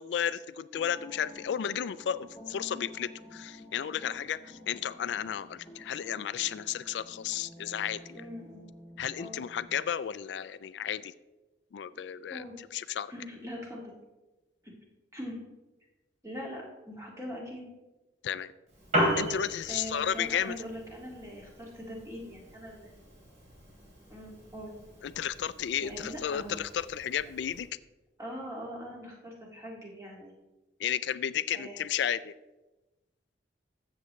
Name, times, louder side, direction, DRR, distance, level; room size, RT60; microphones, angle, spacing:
voice 1, 0.0-8.2 9.0-11.1 11.7-12.4 12.7-13.1 18.2-18.5 19.2-20.6 25.0-27.7 30.8-32.3, left 9 dB, 75° left, 15 dB, 0.3 m, -33 dB
sound 1, 0.7-9.8, left 1 dB, 10° left, 1.8 m, -51 dB
voice 2, 8.1-8.7 9.2-9.4 12.3-12.6 13.1-13.9 14.6-14.7 15.1-15.4 16.2-17.6 19.7-22.9 24.1-24.7 25.8-26.6 28.2-30.3 31.5-31.8, equal, 15° right, -3 dB, 2.1 m, -42 dB
Piano, 18.7-27.7, equal, 40° right, 3.5 m, -37 dB
13.5 x 7.6 x 3.1 m, 1.1 s
head